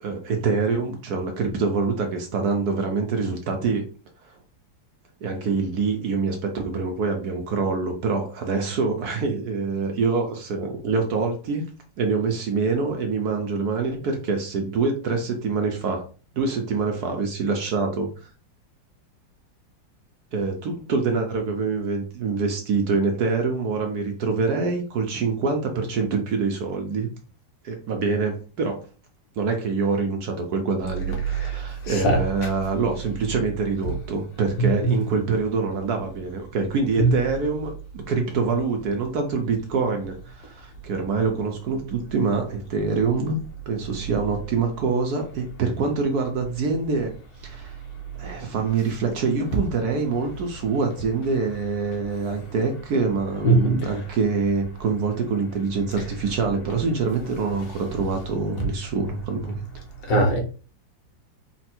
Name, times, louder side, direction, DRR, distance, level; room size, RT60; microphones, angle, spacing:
voice 1, 0.0-3.8 4.3-4.4 5.2-16.0 16.3-18.1 20.3-27.1 27.6-28.8 29.4-43.4 43.7-47.1 47.4-47.7 48.2-59.6, right 4 dB, 65° right, 3 dB, 1.1 m, -25 dB
voice 2, 31.8-32.2 37.0-37.1 53.4-53.7 60.1-60.4, right 1 dB, 70° left, 1 dB, 1.8 m, -19 dB
4.3 x 2.4 x 4.3 m, 0.37 s
omnidirectional pair, 2.1 m